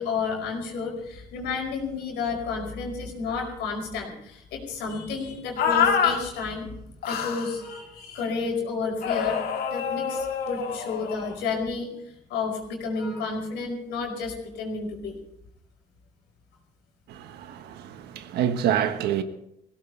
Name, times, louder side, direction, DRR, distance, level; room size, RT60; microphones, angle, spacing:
voice 1, 0.0-6.8 7.0-9.4 9.7-15.2, left 4 dB, 90° left, 5.0 m, -31 dB
sound 1, 5.6-6.2 7.0-7.5 9.0-11.3, left 7 dB, 65° left, 2.1 m, -26 dB
voice 2, 17.1-19.2, right 10 dB, 80° right, 1.4 m, -27 dB
20.0 x 17.0 x 3.4 m
cardioid pair, 110°, 17 cm